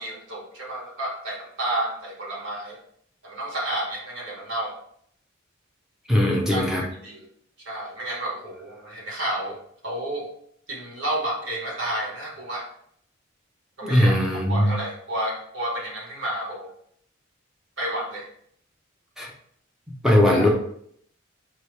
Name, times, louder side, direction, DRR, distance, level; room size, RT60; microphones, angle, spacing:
voice 1, 0.0-2.8 3.2-4.7 6.5-7.3 7.6-9.6 9.8-10.2 10.7-12.7 13.8-16.7 17.8-18.2 20.3-20.4, right 1 dB, 60° right, -3 dB, 1.5 m, -31 dB
voice 2, 6.1-6.8 13.8-14.8 19.2-19.3 20.0-20.5, left 1 dB, ahead, -1 dB, 0.7 m, -19 dB
4.7 x 2.9 x 3.3 m, 0.65 s
head